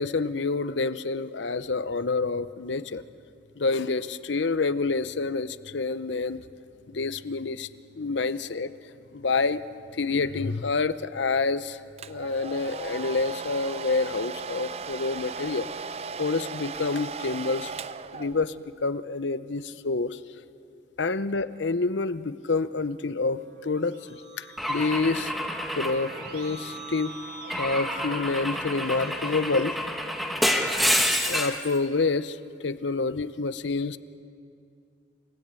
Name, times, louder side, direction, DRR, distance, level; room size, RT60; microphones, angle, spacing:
voice 1, 0.0-3.0 3.6-6.4 6.9-7.7 8.0-8.7 9.1-9.6 9.9-11.8 12.1-15.7 16.2-17.7 18.1-20.2 21.0-25.3 25.8-27.1 27.6-29.8 31.3-32.4 32.6-34.0, left 3 dB, 80° left, 14 dB, 0.8 m, -28 dB
Domestic sounds home sounds, 12.0-18.7, right 5 dB, 35° right, 0.5 m, -37 dB
Keyboard (musical), 23.6-30.2, right 3 dB, 65° right, 3.5 m, -43 dB
Car / Engine / Glass, 24.6-26.8 27.5-31.7, equal, ahead, 1.5 m, -28 dB
28.5 x 17.0 x 8.9 m, 2.4 s
head